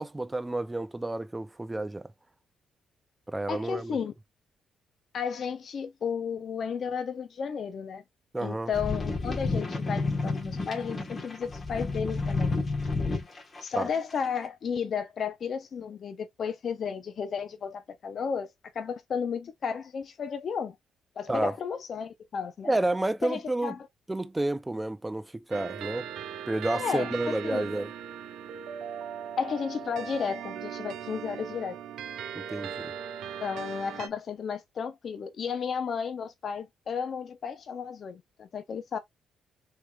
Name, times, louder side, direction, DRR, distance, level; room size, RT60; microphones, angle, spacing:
voice 1, 0.0-2.1 3.3-4.0 8.3-8.7 13.7-13.9 21.3-21.5 22.6-23.7 24.1-26.1 26.5-27.9 32.3-32.9, right 2 dB, 15° right, 0.4 m, -30 dB
voice 2, 3.5-4.1 5.1-8.0 8.4-12.5 13.6-18.5 18.7-20.8 21.2-22.7 23.2-23.8 26.7-27.7 29.4-31.8 33.4-39.0, left 6 dB, 55° left, 0.4 m, -33 dB
sound 1, 8.7-13.6 14.2-14.3, left 3 dB, 35° left, 1.1 m, -30 dB
sound 2, 25.5-34.1, right 8 dB, 80° right, 0.5 m, -39 dB
3.3 x 3.1 x 2.2 m
cardioid pair, 90°, 0 cm